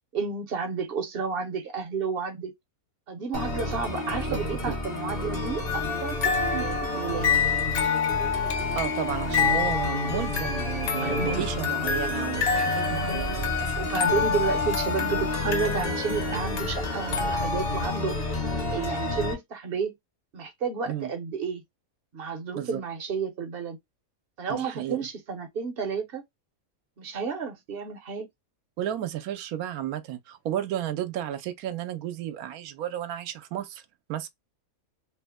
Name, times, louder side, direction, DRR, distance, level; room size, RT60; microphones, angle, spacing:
voice 1, 0.1-2.5 3.1-7.4 9.2-9.5 11.0-11.5 13.1-13.2 13.8-18.4 18.7-19.9 20.3-21.6 22.1-23.8 24.4-26.2 27.0-28.3, right 5 dB, 55° right, 0.8 m, -31 dB
sound 1, 3.3-19.3, left 2 dB, 30° left, 0.9 m, -31 dB
sound 2, 5.7-18.0, left 6 dB, 80° left, 1.2 m, -28 dB
voice 2, 8.8-13.7 20.9-21.1 22.5-22.8 24.5-25.0 28.8-33.8 34.1-34.3, right 11 dB, 85° right, 1.0 m, -33 dB
3.2 x 2.0 x 3.4 m
omnidirectional pair, 1.5 m